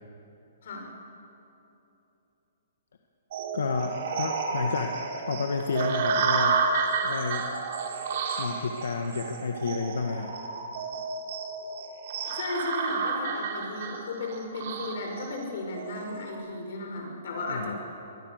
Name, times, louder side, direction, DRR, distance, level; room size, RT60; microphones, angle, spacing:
voice 1, 0.6-0.9 12.3-17.8, left 2 dB, 65° left, 2 dB, 5.6 m, -35 dB
sound 1, 3.3-16.3, right 5 dB, 50° right, 3.1 m, -31 dB
voice 2, 3.5-5.0 5.3-6.6 7.0-7.5 8.4-10.3 17.5-17.8, left 4 dB, 90° left, 3 dB, 1.7 m, -30 dB
23.5 x 21.5 x 6.7 m, 2.9 s
hypercardioid pair, 160°, 0 cm